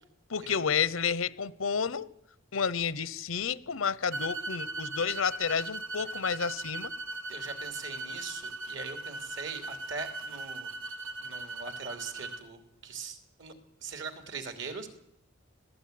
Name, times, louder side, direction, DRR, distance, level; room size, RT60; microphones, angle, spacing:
voice 1, 0.3-2.1 2.5-6.9, left 6 dB, 85° left, 19 dB, 0.8 m, -30 dB
sound 1, 4.1-12.4, right 2 dB, 85° right, 1.4 m, -39 dB
voice 2, 7.3-10.7 11.2-13.5 13.8-14.9, right 4 dB, 60° right, 7 dB, 3.1 m, -41 dB
20.5 x 16.0 x 9.4 m, 0.77 s
head